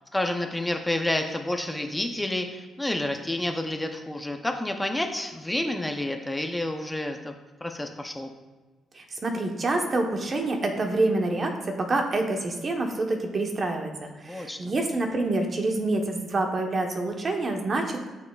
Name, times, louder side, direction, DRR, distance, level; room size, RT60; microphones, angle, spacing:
voice 1, 0.1-7.3 7.6-8.3 14.3-14.7, left 1 dB, 10° left, 4 dB, 0.6 m, -29 dB
voice 2, 8.9-18.1, right 2 dB, 40° right, 3 dB, 1.0 m, -27 dB
8.5 x 6.3 x 2.3 m, 1.2 s
cardioid pair, 90°, 0 cm